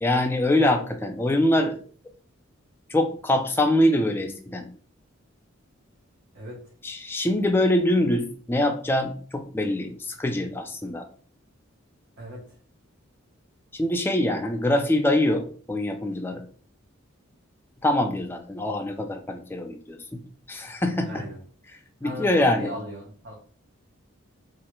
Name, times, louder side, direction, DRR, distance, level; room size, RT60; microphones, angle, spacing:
voice 1, 0.0-1.8 2.9-4.7 6.8-11.1 13.7-16.4 17.8-20.2 20.5-21.3 22.0-22.7, left 1 dB, 10° left, 5 dB, 0.3 m, -24 dB
voice 2, 21.0-21.4 22.0-23.3, equal, 65° right, -5 dB, 1.0 m, -37 dB
3.1 x 2.4 x 3.0 m, 0.44 s
head